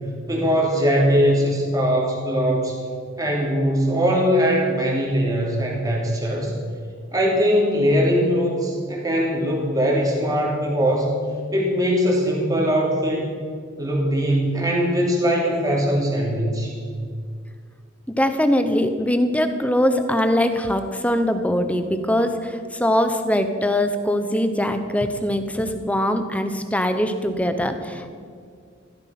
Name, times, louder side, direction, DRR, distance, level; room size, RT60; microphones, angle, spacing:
voice 1, 0.3-2.8 3.2-6.5 7.1-11.1 11.5-13.3 13.8-16.7, equal, 20° right, -2 dB, 3.1 m, -21 dB
voice 2, 18.2-28.2, left 1 dB, 5° left, 8 dB, 0.9 m, -22 dB
15.5 x 13.0 x 6.0 m, 2.1 s
head